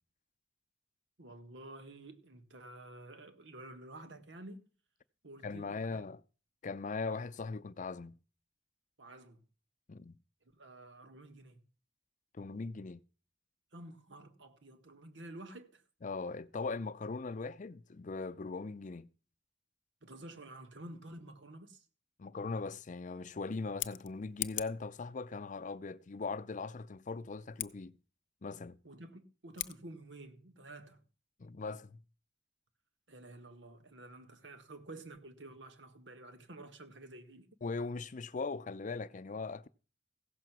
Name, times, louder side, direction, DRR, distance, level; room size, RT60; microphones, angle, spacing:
voice 1, 1.2-4.7 5.2-6.0 9.0-9.4 10.5-11.6 13.7-15.8 20.0-21.8 28.8-31.0 33.1-37.5, right 2 dB, 80° right, 1.6 m, -51 dB
voice 2, 5.4-6.2 6.6-8.2 9.9-10.1 12.3-13.0 16.0-19.1 22.2-28.0 28.4-28.8 31.4-32.0 37.6-39.7, left 4 dB, 45° left, 0.5 m, -40 dB
Scissors, 23.6-24.9 27.5-27.7 29.5-29.8, left 16 dB, 90° left, 0.6 m, -40 dB
15.5 x 6.7 x 6.1 m
head